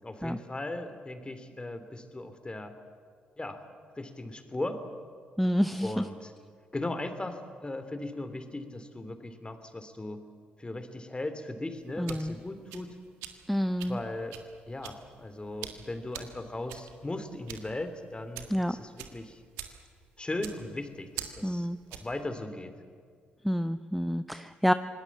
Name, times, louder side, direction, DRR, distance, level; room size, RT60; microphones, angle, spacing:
voice 1, 0.0-2.7 3.4-3.6 4.0-4.8 5.8-6.3 6.7-10.2 10.6-12.9 13.9-14.4 14.7-19.4 20.2-22.7, left 2 dB, 20° left, 9 dB, 3.2 m, -38 dB
voice 2, 5.4-6.0 12.0-12.4 13.5-14.0 18.5-18.8 21.4-21.8 23.4-24.7, equal, ahead, 11 dB, 0.9 m, -28 dB
sound 1, 11.8-22.2, right 11 dB, 80° right, 1.7 m, -46 dB
26.0 x 19.5 x 7.4 m, 2.1 s
hypercardioid pair, 45°, 5 cm